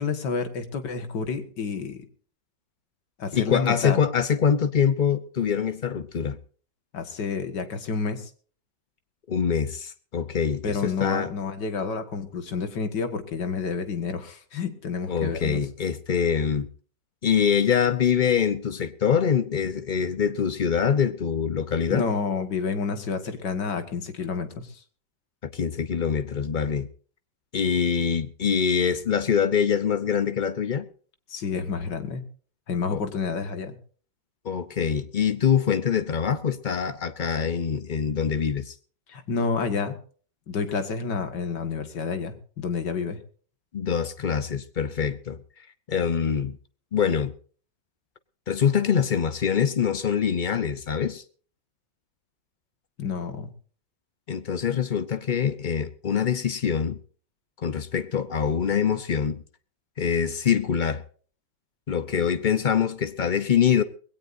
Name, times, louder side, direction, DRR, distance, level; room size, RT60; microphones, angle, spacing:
voice 1, 0.0-2.0 3.2-4.0 6.9-8.3 10.6-15.6 21.9-24.8 31.3-32.2 32.7-33.8 39.1-40.0 40.5-43.2 53.0-53.5, left 5 dB, 65° left, 2.4 m, -29 dB
voice 2, 3.3-6.4 9.3-11.3 15.1-16.7 17.2-22.1 25.4-26.9 27.5-30.9 32.9-33.0 34.4-38.7 43.7-45.4 45.9-46.6 46.9-47.3 48.5-51.2 54.3-57.0 57.6-59.4 60.0-61.0 61.9-63.8, left 7 dB, 85° left, 0.4 m, -24 dB
20.5 x 17.5 x 2.7 m
omnidirectional pair, 2.0 m